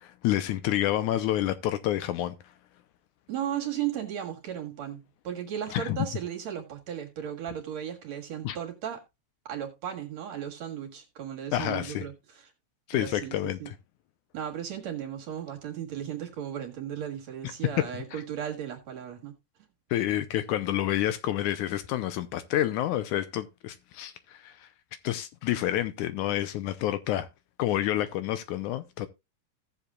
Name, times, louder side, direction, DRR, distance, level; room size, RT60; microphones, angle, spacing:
voice 1, 0.0-2.4 5.7-6.0 8.4-8.6 11.5-12.1 12.9-13.8 19.9-24.7 25.0-27.3 27.6-29.1, left 13 dB, 75° left, 2.1 m, -29 dB
voice 2, 3.3-9.0 9.5-12.5 12.9-13.7 14.3-19.3, right 9 dB, 60° right, 2.8 m, -36 dB
16.5 x 7.1 x 2.3 m
omnidirectional pair, 3.7 m